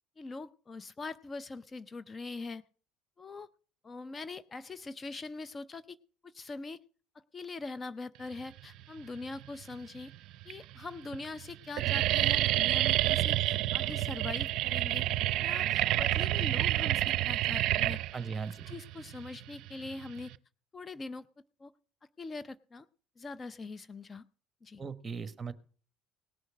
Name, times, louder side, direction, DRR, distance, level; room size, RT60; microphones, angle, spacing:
voice 1, 0.2-2.6 3.2-3.5 3.8-6.0 6.2-6.8 7.3-10.1 10.5-15.1 15.4-18.0 18.7-20.3 20.7-21.3 21.6-21.7 22.2-22.9 23.2-24.2 24.6-24.8, left 3 dB, 30° left, 17 dB, 0.5 m, -42 dB
sound 1, 9.2-9.7 10.4-10.5 10.8-11.2 11.4-20.4, right 15 dB, 65° right, 0.5 m, -29 dB
voice 2, 18.1-18.7 24.8-25.5, right 5 dB, 25° right, 13 dB, 1.2 m, -38 dB
18.5 x 6.4 x 6.3 m, 0.42 s
supercardioid pair, 80°, 0 cm